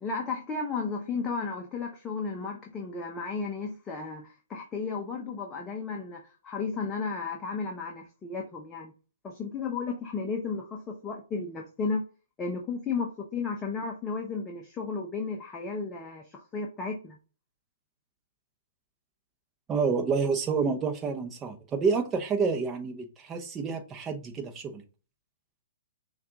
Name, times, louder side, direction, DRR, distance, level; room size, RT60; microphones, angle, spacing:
voice 1, 0.0-8.9 9.2-12.0 12.4-17.2, left 4 dB, 20° left, 0.7 m, -34 dB
voice 2, 19.7-24.8, right 5 dB, 20° right, 0.8 m, -28 dB
5.7 x 2.4 x 2.8 m
hypercardioid pair, 130°, 0 cm